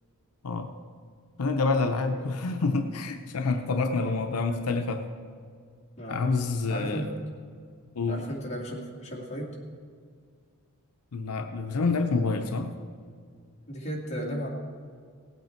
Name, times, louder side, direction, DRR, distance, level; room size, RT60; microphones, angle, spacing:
voice 1, 1.4-5.0 6.1-7.1 8.0-8.2 11.1-12.7, left 3 dB, 85° left, 6 dB, 0.7 m, -27 dB
voice 2, 6.7-7.1 8.1-9.5 13.7-14.5, equal, 30° left, -3 dB, 2.3 m, -35 dB
17.5 x 8.3 x 4.5 m, 2.1 s
head